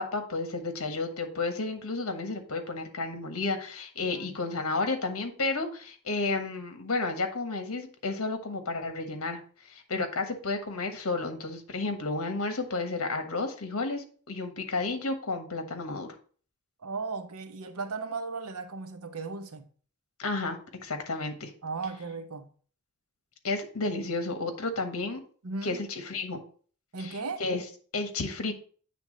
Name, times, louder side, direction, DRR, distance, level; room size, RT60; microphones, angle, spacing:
voice 1, 0.0-9.4 9.6-16.1 20.2-21.5 23.4-25.2 25.6-26.4 27.0-27.6 27.9-28.5, left 3 dB, 75° left, 1.3 m, -32 dB
voice 2, 4.0-4.4 9.9-10.1 16.8-19.7 21.6-22.5 25.4-25.8 26.9-27.4, right 4 dB, 85° right, 0.9 m, -36 dB
8.4 x 3.5 x 5.1 m
head